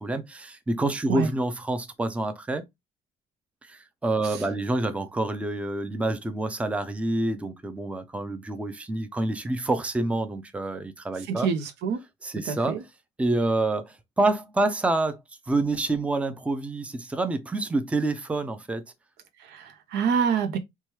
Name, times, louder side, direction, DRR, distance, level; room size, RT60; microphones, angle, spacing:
voice 1, 0.0-2.6 3.6-11.5 12.2-12.8 13.2-15.2 15.5-18.8, right 2 dB, 10° right, 0.4 m, -27 dB
voice 2, 11.3-12.0 12.5-12.8 19.4-20.6, right 6 dB, 85° right, 0.7 m, -26 dB
3.0 x 2.3 x 2.9 m
cardioid pair, 110°, 17 cm